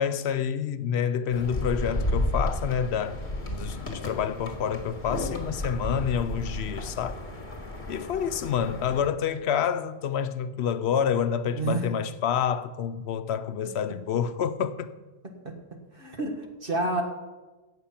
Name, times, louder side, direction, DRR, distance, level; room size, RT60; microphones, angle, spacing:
voice 1, 0.0-3.2 3.5-7.2 7.9-14.9, left 8 dB, 70° left, 0.8 m, -28 dB
sound 1, 1.3-9.1, left 1 dB, 45° left, 2.1 m, -33 dB
voice 2, 11.5-11.9 15.4-15.6 15.9-17.0, right 2 dB, 55° right, 1.7 m, -29 dB
17.0 x 6.7 x 5.7 m
omnidirectional pair, 1.1 m